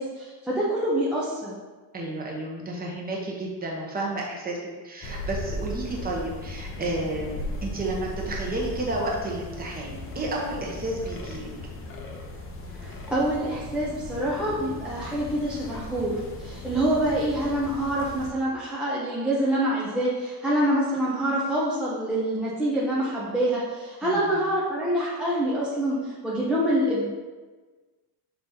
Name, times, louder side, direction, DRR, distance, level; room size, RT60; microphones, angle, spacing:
voice 1, 0.0-1.5 12.7-27.1, right 1 dB, ahead, -8 dB, 0.6 m, -26 dB
voice 2, 1.9-4.6 4.8-11.5 24.0-24.4, right 2 dB, 20° right, -2 dB, 1.1 m, -31 dB
sound 1, 5.0-18.3, left 2 dB, 30° left, 0.7 m, -37 dB
5.9 x 4.2 x 3.8 m, 1.3 s
cardioid pair, 165°, 41 cm